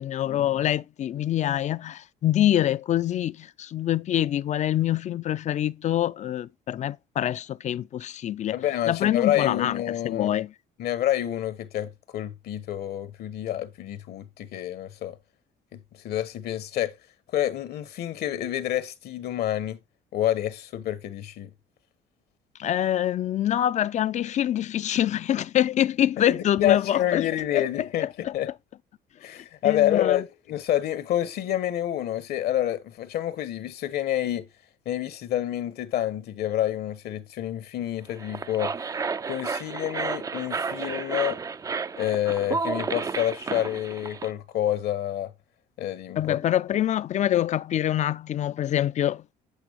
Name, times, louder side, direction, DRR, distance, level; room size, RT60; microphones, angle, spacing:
voice 1, 0.0-8.6 8.9-10.5 22.6-27.3 27.5-28.3 29.4-30.2 46.2-49.2, left 11 dB, 45° left, 0.4 m, -25 dB
voice 2, 8.5-10.3 10.8-15.2 15.7-16.9 17.3-19.8 20.1-21.5 26.2-28.1 28.3-28.5 29.2-34.5 34.8-38.7 39.3-41.4 42.0-45.3 45.8-46.4, left 12 dB, 70° left, 1.2 m, -28 dB
sound 1, 38.1-44.3, right 5 dB, 20° right, 0.4 m, -31 dB
8.3 x 7.9 x 3.0 m
cardioid pair, 110°, 17 cm